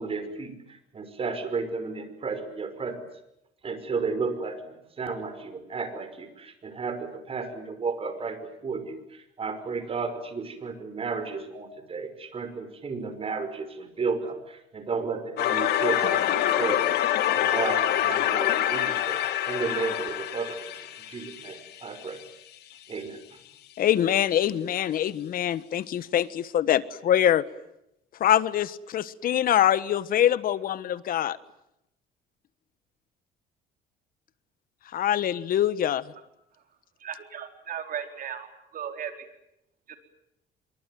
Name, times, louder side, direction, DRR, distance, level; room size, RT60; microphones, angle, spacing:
voice 1, 0.0-3.0 3.6-22.2 22.9-23.4, right 4 dB, 35° right, 10 dB, 5.6 m, -33 dB
sound 1, 15.4-22.2, left 12 dB, 80° left, 2.8 m, -26 dB
voice 2, 23.8-27.4 28.2-31.4 34.9-36.0, left 11 dB, 60° left, 16 dB, 1.3 m, -24 dB
voice 3, 37.0-38.5 38.7-39.1 39.9-40.0, right 8 dB, 55° right, 6 dB, 4.7 m, -36 dB
26.0 x 23.0 x 9.4 m, 0.83 s
cardioid pair, 110°, 17 cm